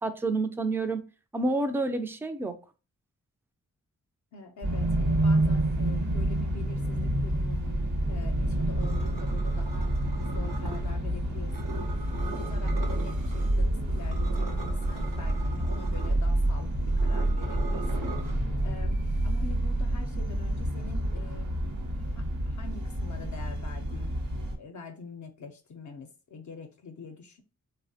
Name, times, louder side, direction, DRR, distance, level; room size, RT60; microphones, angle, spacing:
voice 1, 0.0-1.0 1.3-2.5, right 2 dB, 5° right, 8 dB, 0.3 m, -28 dB
voice 2, 4.3-7.6 8.1-11.8 12.1-18.2 18.6-21.6 21.8-24.2 24.6-27.4, left 3 dB, 65° left, 4 dB, 0.5 m, -45 dB
sound 1, 4.6-24.6, right 1 dB, 60° right, 1.0 m, -28 dB
sound 2, 8.8-11.0 11.5-13.5 13.8-18.3, right 4 dB, 85° right, 0.7 m, -41 dB
3.2 x 2.1 x 2.6 m, 0.33 s
wide cardioid pair, 80°, 33 cm